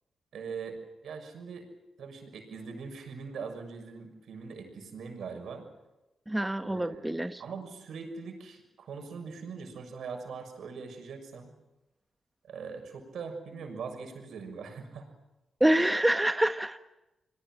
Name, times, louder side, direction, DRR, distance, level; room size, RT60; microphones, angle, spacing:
voice 1, 0.3-1.7 2.0-5.6 6.6-11.5 12.4-15.0, right 5 dB, 75° right, 5 dB, 6.5 m, -41 dB
voice 2, 6.3-7.4 15.6-16.8, right 1 dB, 10° right, 8 dB, 1.3 m, -26 dB
30.0 x 20.5 x 7.7 m, 0.99 s
supercardioid pair, 50°, 0 cm